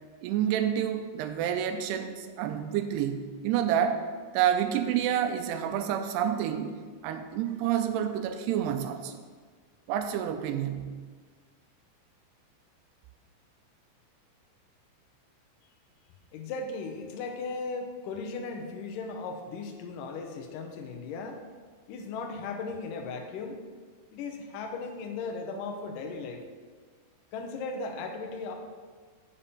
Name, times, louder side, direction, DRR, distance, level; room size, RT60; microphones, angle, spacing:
voice 1, 0.2-4.0 4.3-6.7 7.0-9.2 9.9-11.0, right 9 dB, 80° right, 8 dB, 2.6 m, -29 dB
voice 2, 16.3-21.4 21.9-23.6 24.1-26.4 27.3-28.5, left 4 dB, 75° left, 4 dB, 2.0 m, -37 dB
7.0 x 5.7 x 7.0 m, 1.5 s
omnidirectional pair, 4.8 m